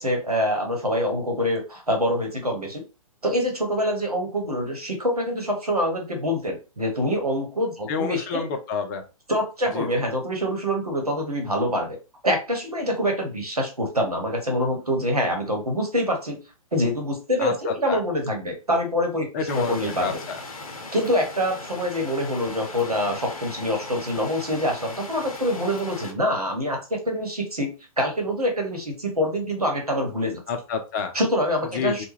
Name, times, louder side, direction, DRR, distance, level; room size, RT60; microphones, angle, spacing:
voice 1, 0.0-2.8 3.2-8.4 9.3-12.0 12.2-16.4 16.7-20.2 20.9-30.4 31.1-32.0, equal, 85° right, 3 dB, 1.1 m, -25 dB
voice 2, 7.9-9.0 9.7-9.9 17.4-18.0 19.3-20.4 30.5-31.1 31.7-32.0, left 5 dB, 30° left, 6 dB, 0.5 m, -28 dB
sound 1, 19.5-26.1, left 3 dB, 70° left, 0.7 m, -38 dB
2.2 x 2.2 x 3.1 m, 0.31 s
figure-of-eight pair, 120°, 19 cm